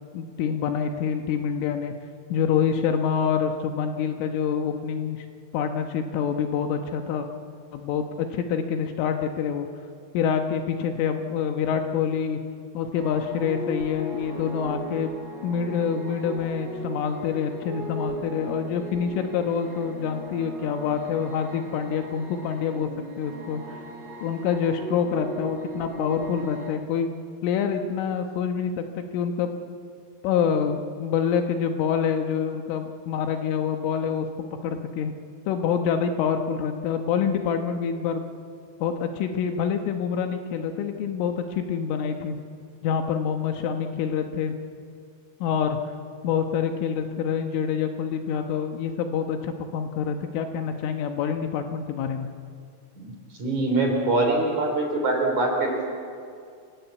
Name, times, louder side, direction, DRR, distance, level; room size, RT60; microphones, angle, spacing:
voice 1, 0.1-1.9 2.3-5.3 5.5-7.3 7.7-9.7 10.1-12.4 12.8-15.1 15.4-22.9 23.2-23.8 24.2-27.1 27.4-29.5 30.2-34.3 34.6-35.1 35.5-38.2 38.8-42.4 42.8-44.5 45.4-45.8 46.2-52.3, left 7 dB, 75° left, 6 dB, 3.6 m, -26 dB
sound 1, 13.0-26.7, right 2 dB, 10° right, 5.1 m, -38 dB
voice 2, 53.4-55.9, right 2 dB, 40° right, 2 dB, 4.0 m, -23 dB
27.5 x 18.0 x 8.3 m, 2.3 s
omnidirectional pair, 6.0 m